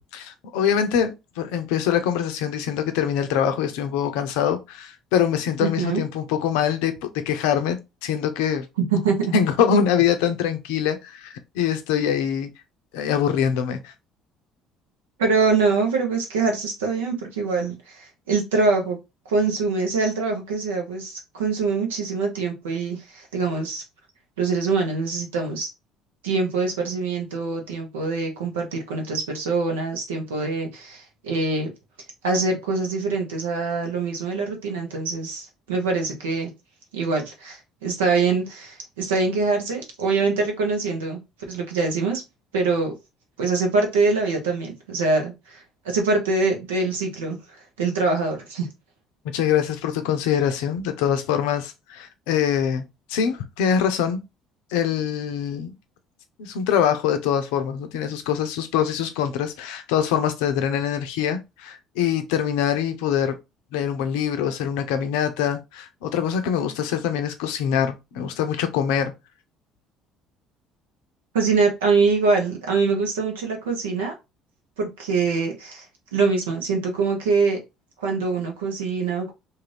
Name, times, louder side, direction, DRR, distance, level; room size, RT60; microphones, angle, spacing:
voice 1, 0.0-8.7 9.3-12.5 12.9-13.9 49.3-54.2 54.7-55.7 56.4-63.4 63.7-69.1, left 8 dB, 75° left, 0.5 m, -24 dB
voice 2, 5.6-6.0 8.9-9.3 15.2-19.0 19.3-23.8 24.4-25.7 26.2-31.7 32.2-36.5 36.9-41.2 41.5-42.2 42.5-42.9 43.4-48.7 71.3-74.1 74.8-75.8 76.1-77.6 78.0-79.3, right 4 dB, 85° right, 0.9 m, -24 dB
2.6 x 2.5 x 3.2 m
hypercardioid pair, 60°, 0 cm